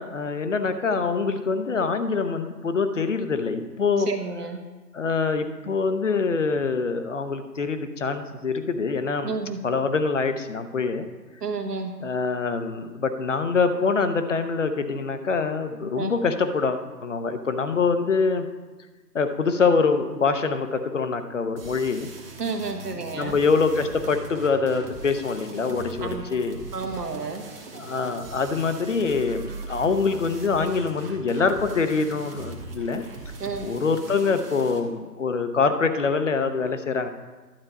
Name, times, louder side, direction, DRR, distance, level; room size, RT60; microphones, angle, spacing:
voice 1, 0.0-4.1 4.9-9.4 9.6-11.1 12.0-18.5 19.1-22.1 22.9-26.6 27.7-33.0 33.6-37.1, left 4 dB, 45° left, 9 dB, 0.8 m, -25 dB
voice 2, 4.0-4.6 9.2-9.6 11.4-12.0 16.0-16.2 22.4-23.4 26.0-26.2 26.7-27.5 33.4-33.8, right 4 dB, 65° right, 4 dB, 1.6 m, -31 dB
sound 1, 21.6-34.8, right 3 dB, 35° right, 1.3 m, -40 dB
12.0 x 8.3 x 4.1 m, 1.3 s
figure-of-eight pair, 165°, 50 cm